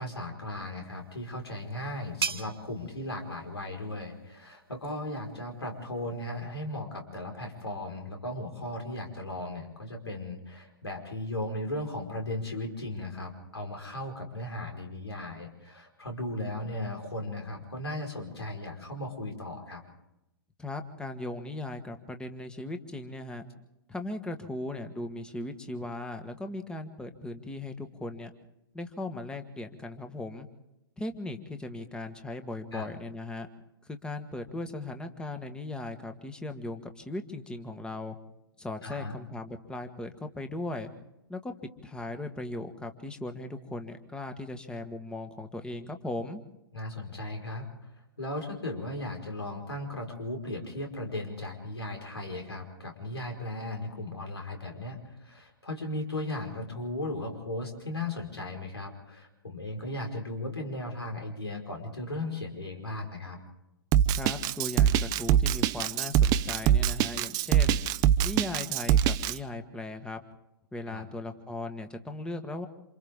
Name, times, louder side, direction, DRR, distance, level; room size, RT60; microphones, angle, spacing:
voice 1, 0.0-19.8 32.7-32.9 38.8-39.2 46.7-47.9 48.2-63.4 70.9-71.0, left 1 dB, 85° left, 2 dB, 4.9 m, -36 dB
sound 1, 0.9-6.3, right 6 dB, 70° right, 1.4 m, -41 dB
voice 2, 20.6-23.4 23.9-28.3 28.7-30.5 31.0-33.5 33.8-38.2 38.6-40.9 41.3-46.4 64.1-67.8 68.2-70.2 70.7-72.7, left 2 dB, 5° left, 7 dB, 1.5 m, -38 dB
Drum kit, 63.9-69.3, right 10 dB, 30° right, 0.7 m, -23 dB
28.0 x 27.0 x 3.7 m, 0.90 s
figure-of-eight pair, 120°, 13 cm